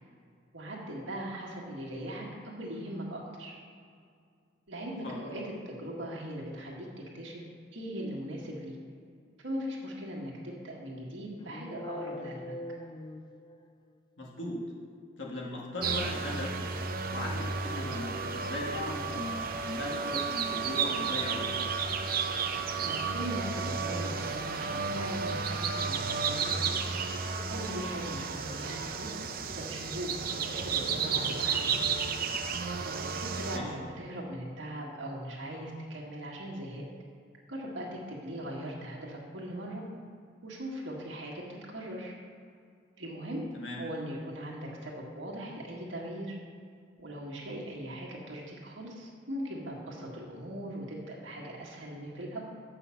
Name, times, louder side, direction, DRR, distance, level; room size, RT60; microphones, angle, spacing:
voice 1, 0.5-3.5 4.7-6.9 7.1-7.4 7.7-8.8 9.4-12.5 22.9-26.7 27.5-29.1 29.6-31.8 32.9-36.8 37.5-39.8 40.4-41.4 41.7-42.1 43.0-43.5 43.8-46.4 47.0-52.5, right 1 dB, 80° right, -3 dB, 1.7 m, -39 dB
sound 1, 11.4-13.9, left 2 dB, 25° left, 0.4 m, -42 dB
voice 2, 14.2-14.6 15.2-16.5 17.1-21.5 33.5-33.6 43.5-43.8, left 1 dB, 70° left, -4 dB, 2.0 m, -38 dB
sound 2, 15.8-33.6, right 5 dB, 50° right, 0.7 m, -32 dB
8.1 x 5.7 x 7.0 m, 2.2 s
head